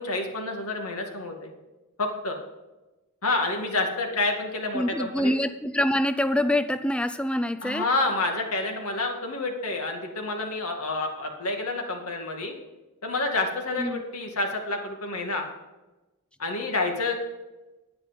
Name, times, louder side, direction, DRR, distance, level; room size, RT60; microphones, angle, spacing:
voice 1, 0.0-1.5 2.0-2.4 3.2-5.3 7.6-12.5 13.0-15.4 16.4-17.2, left 2 dB, 90° left, 2 dB, 2.2 m, -28 dB
voice 2, 4.7-7.9 13.8-14.0, left 1 dB, 5° left, 11 dB, 0.4 m, -25 dB
10.0 x 9.9 x 5.2 m, 1.1 s
head